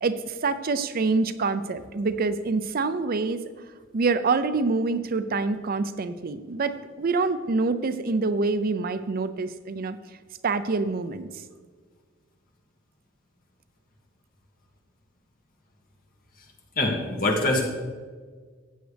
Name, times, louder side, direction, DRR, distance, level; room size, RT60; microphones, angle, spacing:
voice 1, 0.0-3.4 3.9-10.0 10.4-11.3, right 3 dB, 50° right, 11 dB, 0.5 m, -26 dB
voice 2, 16.8-17.6, left 2 dB, 45° left, 0 dB, 2.1 m, -23 dB
14.5 x 9.1 x 3.4 m, 1.5 s
head